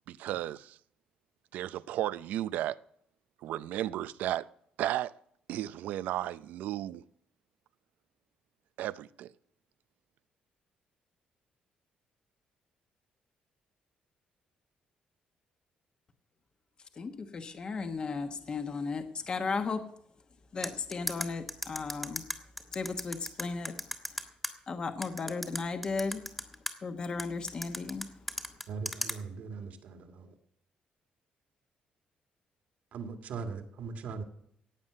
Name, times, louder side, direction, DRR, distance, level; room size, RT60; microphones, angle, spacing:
voice 1, 0.1-0.8 1.5-2.8 3.4-4.5 4.8-5.1 5.5-7.0 8.8-9.3, right 13 dB, 90° right, 0.5 m, -34 dB
voice 2, 17.0-19.9 20.5-22.2 22.7-23.7 24.7-26.2 26.8-28.1, left 4 dB, 35° left, 1.2 m, -35 dB
sound 1, 20.6-24.5 25.0-26.7 27.2-29.2, equal, 5° left, 1.6 m, -35 dB
voice 3, 28.7-30.4 32.9-34.2, right 5 dB, 65° right, 2.1 m, -40 dB
15.5 x 9.2 x 6.6 m
cardioid pair, 140°, 3 cm